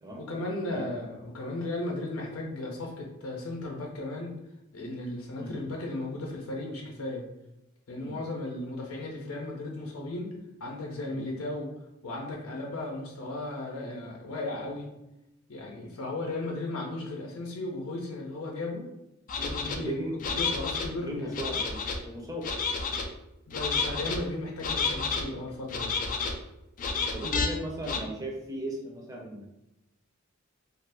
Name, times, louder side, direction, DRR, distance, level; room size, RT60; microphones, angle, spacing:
voice 1, 0.2-4.3 4.7-7.2 7.9-10.3 10.6-11.7 12.0-14.9 15.5-18.9 19.4-21.4 23.5-25.9, left 2 dB, 85° left, -1 dB, 0.6 m, -35 dB
sound 1, 19.3-19.8 20.2-20.9 21.3-22.0 22.4-23.0 23.5-24.2 24.6-25.2 25.7-26.3 26.8-27.5 27.8-28.0, left 4 dB, 40° left, 0.3 m, -30 dB
voice 2, 19.7-20.2 20.9-22.4 26.9-29.5, right 1 dB, 15° right, -1 dB, 0.6 m, -37 dB
2.6 x 2.4 x 3.3 m, 0.90 s
head